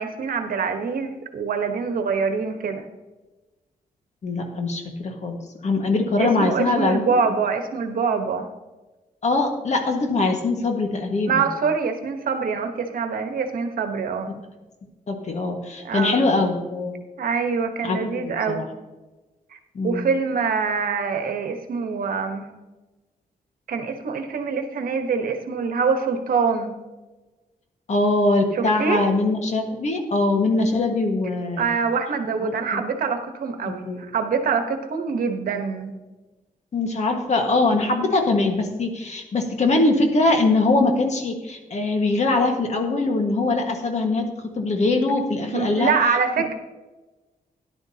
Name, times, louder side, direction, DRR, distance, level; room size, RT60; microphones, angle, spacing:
voice 1, 0.0-2.8 6.2-8.5 11.3-14.4 15.8-16.2 17.2-18.7 19.8-22.5 23.7-26.8 28.5-29.0 31.6-35.9 45.5-46.5, right 5 dB, 75° right, 6 dB, 1.1 m, -25 dB
voice 2, 4.2-5.4 5.6-7.0 9.2-11.5 15.1-17.0 17.8-18.7 19.7-20.1 27.9-31.7 32.4-32.8 33.6-34.0 36.7-44.3 44.5-45.9, left 2 dB, 50° left, 3 dB, 1.6 m, -22 dB
13.5 x 11.0 x 2.8 m, 1.2 s
cardioid pair, 110°, 15 cm